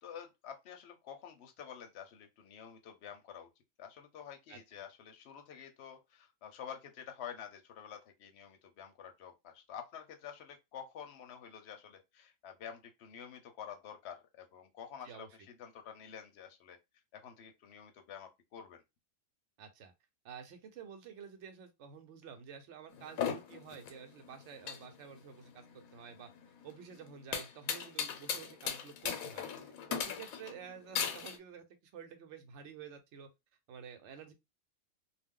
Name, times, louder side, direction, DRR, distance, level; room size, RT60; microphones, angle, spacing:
voice 1, 0.0-3.5 3.8-16.8 17.1-18.8 30.0-30.2, left 8 dB, 60° left, 0.8 m, -49 dB
voice 2, 19.6-19.9 20.2-26.3 26.6-33.3 33.7-34.3, right 7 dB, 65° right, 0.9 m, -50 dB
sound 1, 22.9-31.4, left 7 dB, 85° left, 1.0 m, -39 dB
2.4 x 2.1 x 3.6 m
omnidirectional pair, 1.4 m